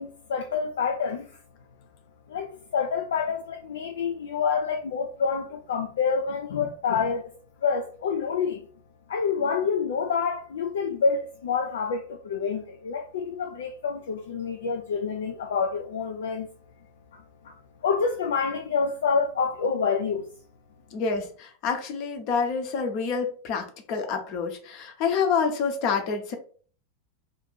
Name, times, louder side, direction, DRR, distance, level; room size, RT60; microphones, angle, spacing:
voice 1, 0.0-1.3 2.3-7.3 7.6-8.7 9.1-16.5 17.1-17.5 17.8-20.3, left 5 dB, 60° left, 0.4 m, -27 dB
voice 2, 20.9-26.4, left 5 dB, 40° left, 0.8 m, -27 dB
2.6 x 2.5 x 3.9 m
figure-of-eight pair, 90°, 0 cm